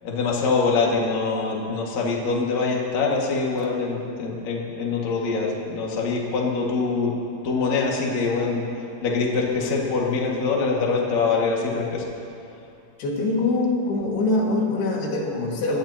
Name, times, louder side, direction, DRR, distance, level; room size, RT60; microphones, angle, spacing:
voice 1, 0.0-7.1 7.4-8.6 9.0-12.0, left 4 dB, 50° left, -3 dB, 3.0 m, -24 dB
voice 2, 13.0-15.8, left 2 dB, 85° left, -2 dB, 4.2 m, -23 dB
25.5 x 19.5 x 2.9 m, 2.6 s
omnidirectional pair, 4.5 m